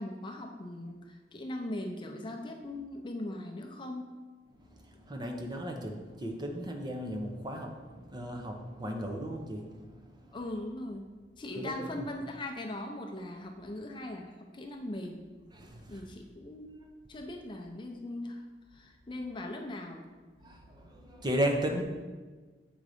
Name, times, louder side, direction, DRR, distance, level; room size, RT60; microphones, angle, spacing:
voice 1, 0.0-4.1 10.3-15.3 15.9-16.7 17.1-18.4 18.7-20.1, left 1 dB, 25° left, 2 dB, 0.6 m, -40 dB
voice 2, 4.6-10.1 11.6-12.0 15.5-16.0 20.4-21.8, equal, 25° right, 2 dB, 0.7 m, -35 dB
7.3 x 3.9 x 4.9 m, 1.3 s
head